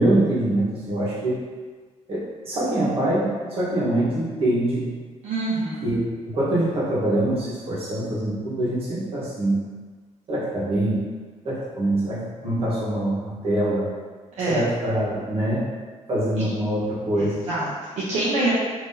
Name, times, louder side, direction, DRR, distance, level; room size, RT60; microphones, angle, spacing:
voice 1, 0.0-1.4 2.1-4.9 5.8-9.6 10.3-11.1 11.4-13.8 14.5-15.7 16.1-17.4, right 1 dB, 50° right, -8 dB, 1.2 m, -24 dB
voice 2, 5.2-5.8 14.4-14.7 17.2-18.5, right 2 dB, 70° right, -9 dB, 0.7 m, -26 dB
3.8 x 2.8 x 2.7 m, 1.4 s
cardioid pair, 155°, 13 cm